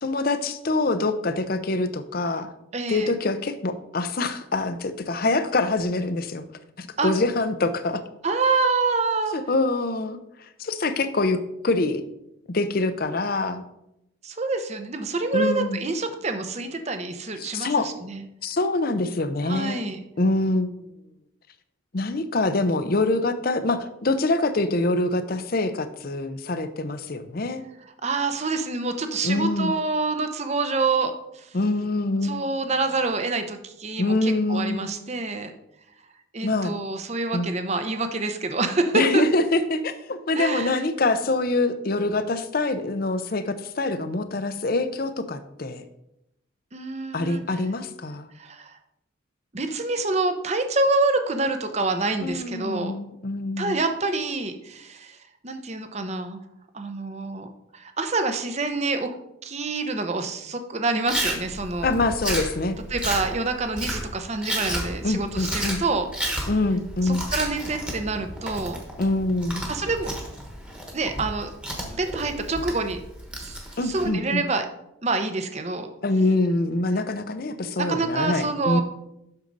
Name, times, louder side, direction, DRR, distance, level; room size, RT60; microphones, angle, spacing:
voice 1, 0.0-2.5 2.9-6.4 6.8-8.0 9.3-10.2 10.6-12.0 12.5-13.6 15.3-15.8 17.5-17.9 18.4-19.9 20.2-20.8 21.9-27.6 29.2-29.7 31.5-32.4 34.0-34.9 36.4-36.7 37.3-37.5 38.9-45.8 47.1-48.3 52.2-53.8 61.8-62.8 65.0-65.8 66.5-67.3 69.0-69.6 73.8-74.4 76.0-78.8, left 2 dB, 45° left, 11 dB, 0.6 m, -25 dB
voice 2, 2.7-3.1 7.0-7.1 8.2-9.3 14.2-18.2 19.4-20.0 28.0-31.6 32.2-35.5 36.3-39.2 40.4-40.8 46.7-47.4 48.3-48.8 49.5-52.9 53.6-55.2 55.4-56.4 56.7-59.2 59.4-61.9 62.9-66.5 67.0-68.8 69.7-70.1 70.9-71.5 72.0-73.0 73.4-73.6 73.8-74.7 75.0-75.9 77.8-78.8, right 3 dB, 30° right, 7 dB, 0.8 m, -27 dB
Chewing mastication, 61.1-74.1, right 1 dB, 5° right, 1.2 m, -32 dB
8.1 x 6.5 x 4.0 m, 0.84 s
head